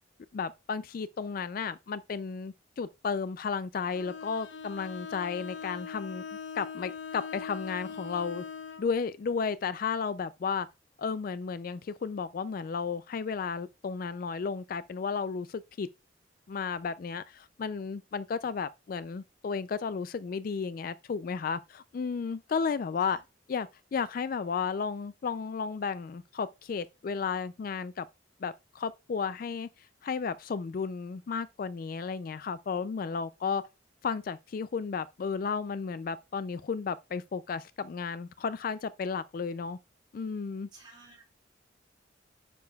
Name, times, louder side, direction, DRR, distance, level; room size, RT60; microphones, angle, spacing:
voice 1, 0.3-6.2 6.5-8.4 8.8-10.7 11.0-15.9 16.5-23.2 23.5-28.1 28.4-33.6 34.0-39.8 40.1-40.7, left 5 dB, 45° left, 0.3 m, -33 dB
Bowed string instrument, 3.9-8.9, left 6 dB, 65° left, 0.7 m, -41 dB
voice 2, 40.7-41.2, right 3 dB, 25° right, 4.6 m, -53 dB
9.4 x 6.8 x 2.3 m
head